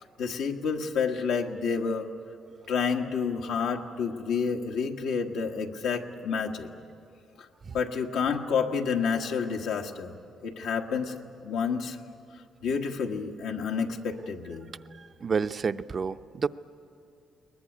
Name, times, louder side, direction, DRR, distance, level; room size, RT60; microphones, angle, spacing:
voice 1, 0.2-2.1 2.7-6.7 7.4-7.5 7.7-10.1 10.4-12.0 12.6-14.7, left 6 dB, 90° left, 1 dB, 1.5 m, -29 dB
voice 2, 15.0-16.5, right 5 dB, 45° right, 11 dB, 0.6 m, -30 dB
21.5 x 19.5 x 9.9 m, 2.5 s
cardioid pair, 90°, 0 cm